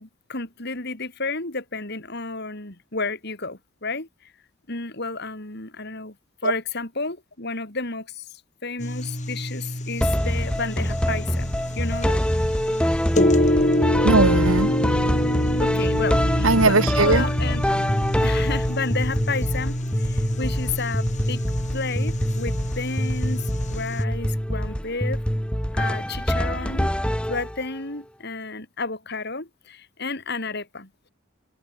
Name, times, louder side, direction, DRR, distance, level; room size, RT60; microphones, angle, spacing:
voice 1, 0.0-4.3 4.7-6.2 6.4-8.3 8.6-12.2 15.6-17.6 18.2-21.4 21.7-25.2 25.7-26.9 27.3-31.1, left 3 dB, 55° left, 4.0 m, -32 dB
sound 1, 8.8-24.0, left 1 dB, 35° left, 3.5 m, -26 dB
sound 2, 10.0-27.8, equal, 5° left, 2.2 m, -25 dB
voice 2, 14.0-15.3 15.5-15.6 16.4-17.3, right 3 dB, 90° right, 1.8 m, -20 dB
head